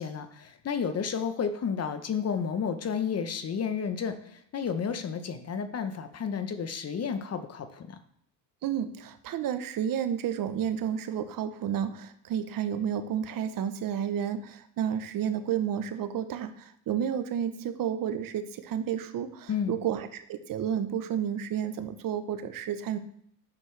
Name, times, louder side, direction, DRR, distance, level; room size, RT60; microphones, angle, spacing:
voice 1, 0.0-8.0 19.5-19.8, left 6 dB, 35° left, 10 dB, 0.9 m, -31 dB
voice 2, 8.6-23.0, right 9 dB, 50° right, 10 dB, 0.9 m, -31 dB
9.6 x 6.5 x 3.3 m, 0.68 s
supercardioid pair, 95°, 42 cm